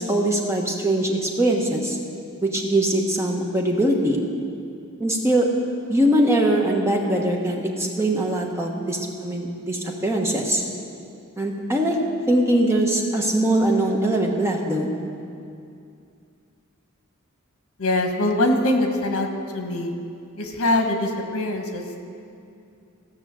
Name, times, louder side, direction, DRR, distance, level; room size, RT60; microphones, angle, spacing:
voice 1, 0.0-2.0 2.4-4.2 5.0-5.5 5.9-10.6 11.4-12.0 12.3-14.9, right 1 dB, 10° right, 0 dB, 1.2 m, -22 dB
voice 2, 17.8-19.3 19.5-19.9 20.4-22.0, left 1 dB, 70° left, 3 dB, 1.5 m, -23 dB
15.0 x 6.1 x 7.6 m, 2.5 s
head